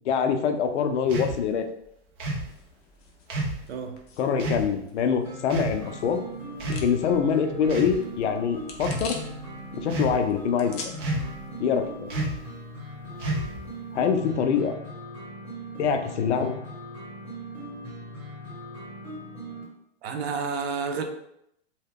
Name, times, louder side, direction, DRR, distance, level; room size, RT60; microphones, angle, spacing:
voice 1, 0.1-1.6 4.2-6.2 6.7-9.2 9.7-11.0 11.6-12.1 13.9-14.7 15.8-16.6, left 7 dB, 80° left, 6 dB, 0.6 m, -25 dB
sound 1, 1.1-1.4 2.2-2.5 3.3-3.6 4.4-4.7 5.5-5.8 6.6-7.1 7.7-8.0 8.7-9.1 9.9-10.3 11.0-11.4 12.1-12.4 13.2-13.7, right 2 dB, 25° right, 0.3 m, -30 dB
sound 2, 2.3-11.5, left 4 dB, 35° left, 0.5 m, -46 dB
voice 2, 3.7-4.0 20.0-21.0, right 5 dB, 65° right, 6 dB, 0.6 m, -30 dB
sound 3, 5.2-19.6, right 1 dB, 5° right, 1.0 m, -40 dB
2.8 x 2.2 x 3.6 m, 0.76 s
hypercardioid pair, 155°, 34 cm